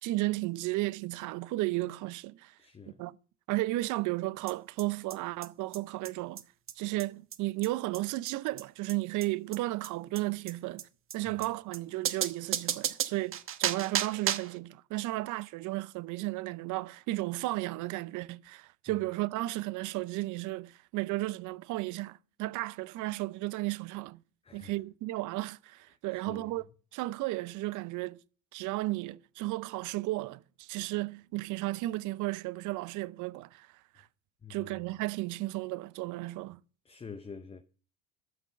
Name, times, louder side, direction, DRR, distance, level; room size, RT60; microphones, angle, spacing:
voice 1, 0.0-2.5 3.0-3.1 3.5-6.4 6.8-10.8 11.1-24.2 24.5-26.6 26.9-28.2 28.5-34.1 34.5-36.6, right 19 dB, 55° right, 0.6 m, -34 dB
voice 2, 2.6-3.0 18.9-19.0 24.4-24.7 26.1-26.5 34.4-34.7 36.8-37.6, left 5 dB, 15° left, 0.7 m, -47 dB
sound 1, 4.5-4.6 4.8-4.9 5.1-5.2 5.4-5.5 5.7-5.8 6.0-6.1 6.4-6.5 6.7-6.8 7.0-7.1 7.3-7.4 7.6-7.7 7.9-8.0 8.3-8.4 8.6-8.7 8.9-9.0 9.2-9.3 9.5-9.6 9.8-9.9 10.2-10.3 10.5-10.6 10.8-10.9 11.1-11.2 11.4-11.5 11.7-11.8 12.1-14.6, right 9 dB, 35° right, 1.0 m, -33 dB
9.4 x 6.1 x 6.6 m
supercardioid pair, 90°, 37 cm